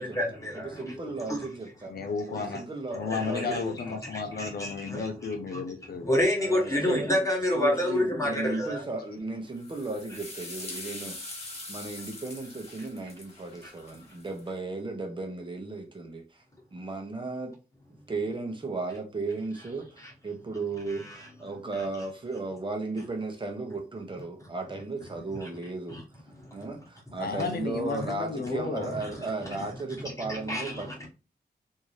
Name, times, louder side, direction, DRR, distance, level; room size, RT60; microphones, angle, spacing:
voice 1, 0.0-0.9 1.3-1.4 2.3-2.5 3.1-3.4 4.1-5.1 5.5-5.6 6.1-8.8 20.9-21.3 25.4-25.5 25.9-26.0 26.3-26.7 29.0-29.1 30.0-31.1, left 1 dB, 20° left, 1.2 m, -29 dB
voice 2, 0.5-2.0 2.3-4.0 6.4-7.1 7.5-11.2 11.7-16.4 16.7-17.6 18.1-19.9 20.2-26.0 26.5-31.1, right 3 dB, 30° right, 0.9 m, -35 dB
voice 3, 1.9-2.7 2.9-6.1 27.2-29.0, left 4 dB, 65° left, 0.6 m, -33 dB
sound 1, 9.6-14.4, left 2 dB, 35° left, 1.3 m, -43 dB
3.5 x 2.7 x 3.1 m
wide cardioid pair, 145°, 17 cm